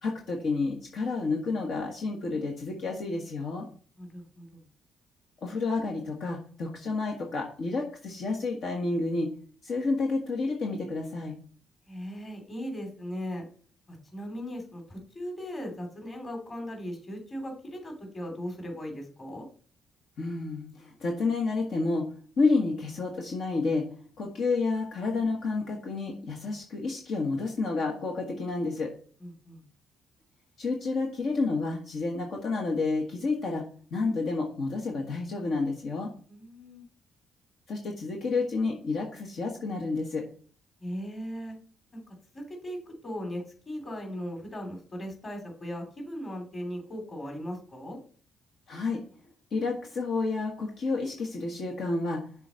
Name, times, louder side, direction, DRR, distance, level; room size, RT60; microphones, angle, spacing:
voice 1, 0.0-3.7 5.4-9.3 9.6-11.4 20.2-23.9 24.2-28.9 30.6-33.6 33.9-36.1 37.7-40.2 48.7-49.0 49.5-52.3, left 3 dB, 65° left, 0 dB, 1.5 m, -30 dB
voice 2, 4.0-4.6 11.9-13.4 13.9-19.5 29.2-29.6 36.3-36.8 40.8-41.5 41.9-42.0 42.3-48.0, equal, 30° left, 2 dB, 3.1 m, -38 dB
6.9 x 4.1 x 6.3 m, 0.44 s
cardioid pair, 90°, 0 cm